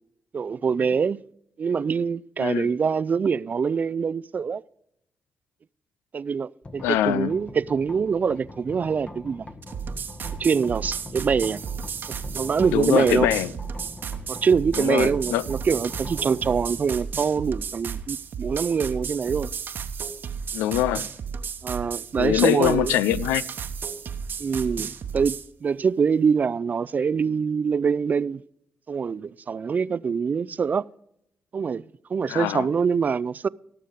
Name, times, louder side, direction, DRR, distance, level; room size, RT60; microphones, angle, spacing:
voice 1, 0.3-1.2 1.6-4.6 6.1-9.5 10.4-11.6 12.3-13.3 14.3-19.5 21.6-22.9 24.4-28.4 28.9-30.8 31.5-31.8 32.1-33.5, right 6 dB, 45° right, 0.3 m, -24 dB
voice 2, 2.4-2.7 6.8-7.3 12.7-13.5 14.8-15.5 20.5-21.1 22.2-23.4 32.3-32.7, left 13 dB, 90° left, 0.4 m, -23 dB
sound 1, 6.6-20.5, left 1 dB, 35° left, 1.4 m, -43 dB
sound 2, 9.6-25.5, right 6 dB, 65° right, 1.0 m, -33 dB
17.5 x 6.6 x 5.1 m
supercardioid pair, 45°, 4 cm